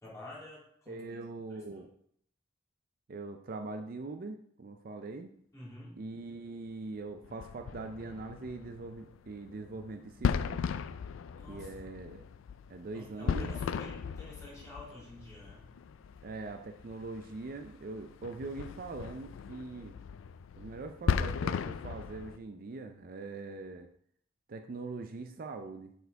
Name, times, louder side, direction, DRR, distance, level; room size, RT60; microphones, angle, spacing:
voice 1, 0.0-1.0 1.5-1.6 5.5-6.0 11.4-11.9 12.9-15.7, left 1 dB, 15° left, -7 dB, 3.0 m, -49 dB
voice 2, 0.9-1.9 3.1-5.3 6.0-10.6 11.5-12.2 12.7-13.5 16.2-20.0 20.6-23.9 24.5-25.9, right 3 dB, 45° right, 6 dB, 0.4 m, -42 dB
sound 1, 7.2-22.4, left 6 dB, 85° left, 0.3 m, -37 dB
6.7 x 4.5 x 4.6 m, 0.67 s
head